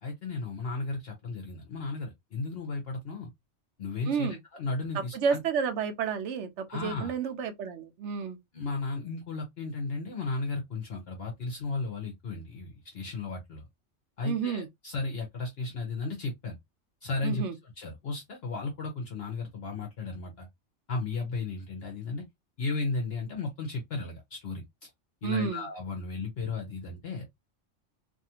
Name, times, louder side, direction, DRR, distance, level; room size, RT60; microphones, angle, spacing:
voice 1, 0.0-3.3 3.8-5.4 6.7-7.1 8.5-13.6 14.2-16.6 17.0-17.4 17.8-20.5 20.9-22.2 22.6-24.6 25.2-27.3, left 3 dB, 60° left, 0.9 m, -34 dB
voice 2, 4.1-4.4 5.1-8.4 14.2-14.7 17.2-17.5 25.2-25.7, right 6 dB, 75° right, 0.9 m, -30 dB
2.6 x 2.4 x 2.7 m
omnidirectional pair, 1.3 m